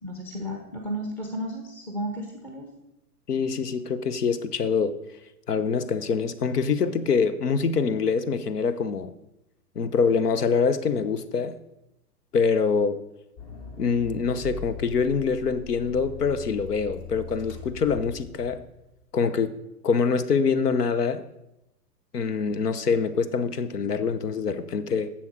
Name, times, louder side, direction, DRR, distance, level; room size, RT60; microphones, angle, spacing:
voice 1, 0.0-2.7, equal, 5° left, 1 dB, 0.6 m, -33 dB
voice 2, 3.3-5.0 5.5-9.1 9.8-11.6 12.3-13.0 13.8-18.6 19.1-19.6 19.8-21.2 22.1-25.1, left 5 dB, 70° left, 14 dB, 0.9 m, -25 dB
Accelerating revving vroom, 13.4-18.8, left 5 dB, 45° left, 2.3 m, -40 dB
10.5 x 7.5 x 4.8 m, 0.89 s
figure-of-eight pair, 110°, 49 cm